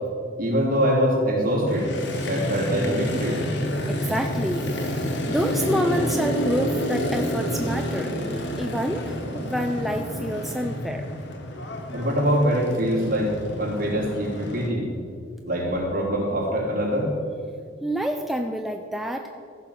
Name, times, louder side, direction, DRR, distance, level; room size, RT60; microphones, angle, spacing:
voice 1, 0.4-1.9 2.2-3.4 11.9-13.3 13.6-14.9 15.5-17.1, equal, 45° right, -4 dB, 3.2 m, -23 dB
Motorcycle, 1.7-14.7, equal, 60° left, 1.4 m, -29 dB
voice 2, 3.9-4.8 5.3-8.1 8.5-11.1 17.8-19.3, equal, ahead, 4 dB, 0.4 m, -27 dB
14.5 x 5.7 x 6.5 m, 2.3 s
head